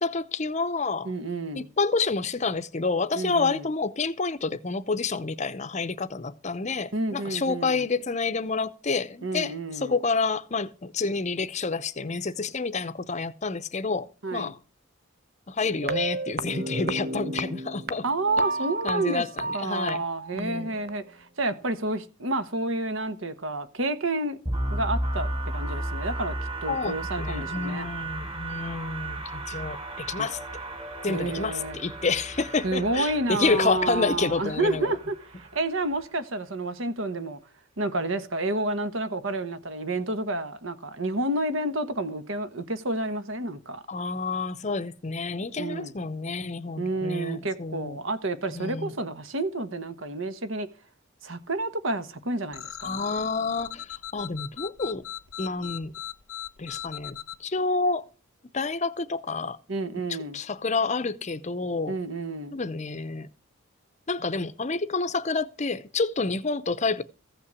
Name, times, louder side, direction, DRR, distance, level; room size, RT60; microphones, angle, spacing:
voice 1, 0.0-1.1 1.5-14.6 15.5-18.0 18.4-18.5 18.8-20.0 20.3-20.7 26.7-30.4 31.0-34.9 43.9-48.0 48.5-48.9 52.8-55.0 55.4-55.9 56.6-58.1 58.5-59.6 60.3-62.0 62.5-63.3 64.1-67.0, left 4 dB, 35° left, 0.7 m, -29 dB
voice 2, 1.0-1.7 3.1-3.7 6.9-7.8 9.2-10.0 14.2-14.5 18.0-19.2 19.5-24.4 24.7-26.3 26.6-27.9 29.5-29.6 30.2-30.3 31.1-31.8 32.6-37.4 37.8-43.8 45.6-45.9 46.8-50.7 51.2-53.1 59.7-60.4 61.9-62.6, right 2 dB, 70° right, 1.4 m, -30 dB
sound 1, 15.8-20.9, right 2 dB, 50° right, 0.8 m, -32 dB
sound 2, 24.5-36.2, right 1 dB, 25° right, 2.8 m, -34 dB
sound 3, 52.5-57.4, left 10 dB, 90° left, 0.8 m, -39 dB
15.0 x 5.7 x 8.3 m
head